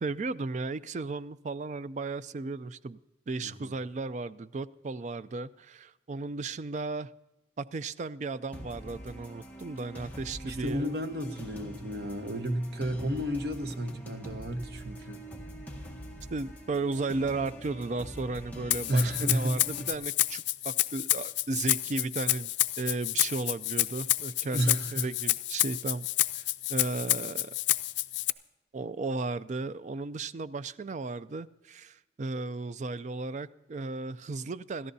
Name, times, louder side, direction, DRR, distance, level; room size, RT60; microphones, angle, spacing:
voice 1, 0.0-3.0 3.3-7.1 7.6-10.9 16.3-26.1 26.3-27.5 28.7-34.9, right 3 dB, 40° right, 0.4 m, -35 dB
voice 2, 3.4-3.7 10.4-15.2 18.9-19.6 24.5-25.1, right 1 dB, 60° right, 1.1 m, -31 dB
sound 1, 8.5-19.9, equal, 10° left, 1.7 m, -45 dB
Rattle (instrument), 18.7-28.3, left 16 dB, 85° left, 0.4 m, -29 dB
28.0 x 14.0 x 2.7 m
head